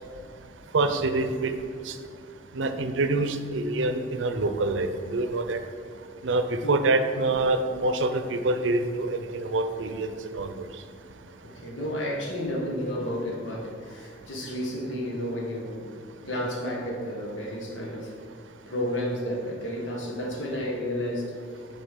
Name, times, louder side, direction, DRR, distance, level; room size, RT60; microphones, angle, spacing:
voice 1, 0.7-1.5 1.9-2.0 2.5-5.6 6.2-10.1 10.3-10.5, right 2 dB, 85° right, 8 dB, 0.6 m, -26 dB
voice 2, 11.4-16.0 16.2-18.1 18.7-21.6, equal, 85° left, -1 dB, 1.4 m, -32 dB
7.1 x 4.0 x 5.2 m, 2.3 s
head